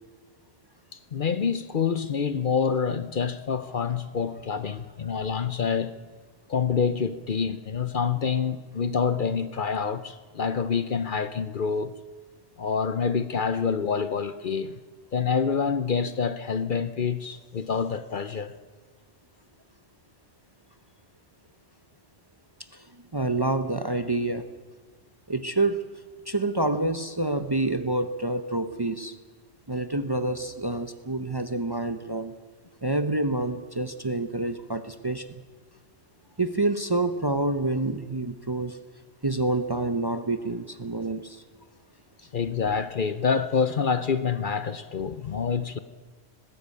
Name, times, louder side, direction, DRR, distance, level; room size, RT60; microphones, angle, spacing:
voice 1, 0.9-5.9 6.5-12.0 12.6-14.8 15.1-18.5 42.3-45.8, left 6 dB, 50° left, 0.8 m, -27 dB
voice 2, 23.1-24.5 25.3-25.8 26.3-29.2 29.7-32.3 32.8-35.4 36.4-38.8 39.2-41.4, right 2 dB, 25° right, 0.7 m, -27 dB
20.0 x 16.0 x 8.5 m
omnidirectional pair, 1.2 m